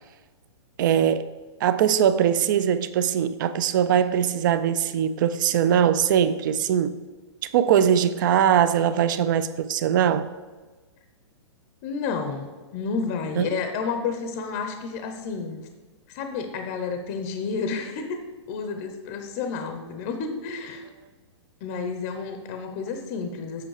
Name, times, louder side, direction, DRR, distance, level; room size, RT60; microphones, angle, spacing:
voice 1, 0.8-1.2 1.6-7.0 7.5-10.3 13.4-13.5, right 9 dB, 40° right, 14 dB, 0.4 m, -21 dB
voice 2, 11.8-15.6 16.1-18.2 18.5-20.9 21.6-23.6, left 5 dB, 30° left, 6 dB, 0.7 m, -31 dB
7.9 x 5.4 x 4.8 m, 1.3 s
hypercardioid pair, 160°, 16 cm